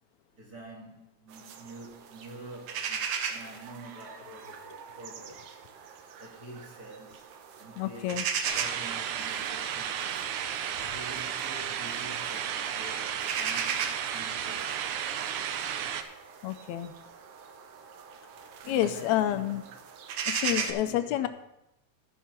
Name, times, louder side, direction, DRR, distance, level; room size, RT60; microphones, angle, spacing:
voice 1, 0.3-5.6 6.2-7.3 7.6-8.3 8.5-10.6 10.9-14.9 18.6-19.8 20.4-21.3, right 2 dB, 40° right, 1.7 m, -47 dB
sound 1, 1.3-20.7, right 7 dB, 65° right, 1.6 m, -38 dB
voice 2, 7.8-8.3 16.4-16.9 18.7-19.6 20.3-21.3, left 12 dB, 80° left, 1.8 m, -29 dB
sound 2, 8.4-16.0, right 9 dB, 85° right, 2.2 m, -33 dB
13.0 x 5.6 x 5.8 m
omnidirectional pair, 3.4 m